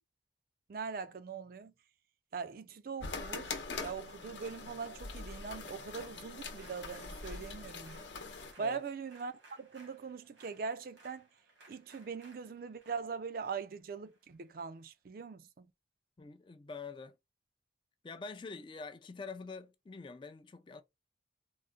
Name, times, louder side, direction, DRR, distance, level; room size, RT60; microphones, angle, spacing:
voice 1, 0.7-1.7 2.3-8.1 8.6-11.3 11.7-15.7, right 5 dB, 50° right, 0.4 m, -41 dB
sound 1, 3.0-8.5, left 4 dB, 75° left, 0.8 m, -43 dB
sound 2, 6.5-14.8, right 2 dB, 80° right, 1.3 m, -62 dB
voice 2, 16.2-17.2 18.0-20.8, left 4 dB, 25° left, 0.3 m, -46 dB
3.8 x 2.1 x 2.4 m
head